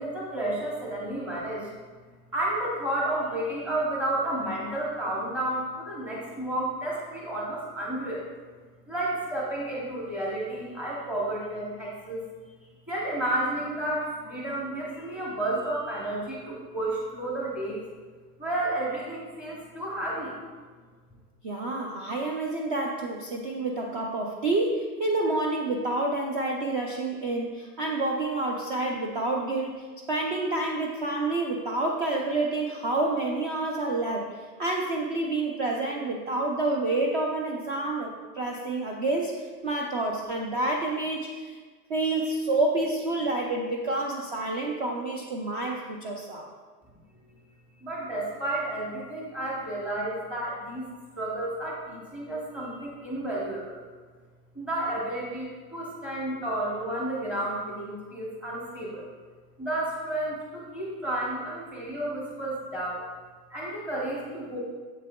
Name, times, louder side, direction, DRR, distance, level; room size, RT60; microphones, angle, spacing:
voice 1, 0.0-1.7 2.3-8.3 8.9-12.2 12.9-17.8 18.4-20.6 47.8-50.9 51.2-53.8 54.5-59.0 59.6-63.0 63.5-64.6, right 1 dB, 5° right, -5 dB, 0.8 m, -31 dB
voice 2, 21.4-41.6 41.9-46.5, right 2 dB, 35° right, 0 dB, 0.5 m, -28 dB
7.5 x 7.3 x 2.2 m, 1.5 s
supercardioid pair, 155°, 48 cm